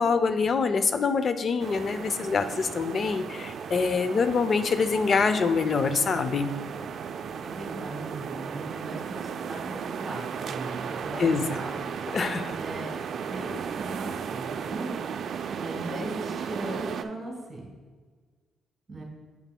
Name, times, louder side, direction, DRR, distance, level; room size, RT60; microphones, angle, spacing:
voice 1, 0.0-6.5 11.2-11.4 12.1-12.6, left 5 dB, 45° left, 11 dB, 0.4 m, -25 dB
sound 1, 1.6-17.0, right 7 dB, 60° right, 0.3 m, -35 dB
voice 2, 7.4-11.9 12.5-15.0 15.5-17.7 18.9-19.0, right 1 dB, 25° right, 0 dB, 1.9 m, -38 dB
9.2 x 5.4 x 2.2 m, 1.5 s
cardioid pair, 90°, 0 cm